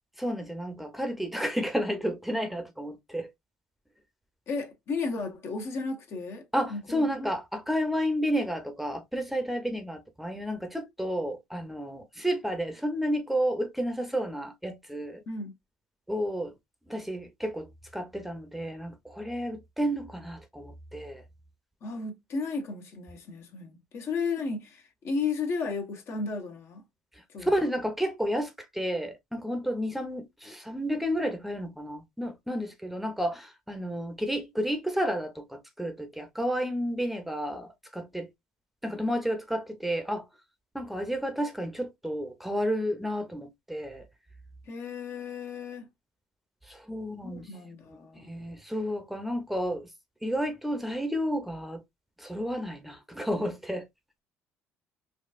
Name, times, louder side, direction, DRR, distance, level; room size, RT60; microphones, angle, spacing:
voice 1, 0.2-3.3 6.5-15.2 16.1-16.5 16.9-17.7 17.9-21.2 27.4-38.3 38.8-40.3 40.7-44.0 46.7-47.5 48.3-49.9 50.2-51.8 52.2-53.9, equal, 5° right, 0.8 m, -31 dB
voice 2, 4.5-7.3 15.3-15.5 21.8-26.8 27.3-27.5 44.7-45.9 47.2-48.3, left 4 dB, 55° left, 1.0 m, -34 dB
4.0 x 2.3 x 2.4 m
supercardioid pair, 75°, 5 cm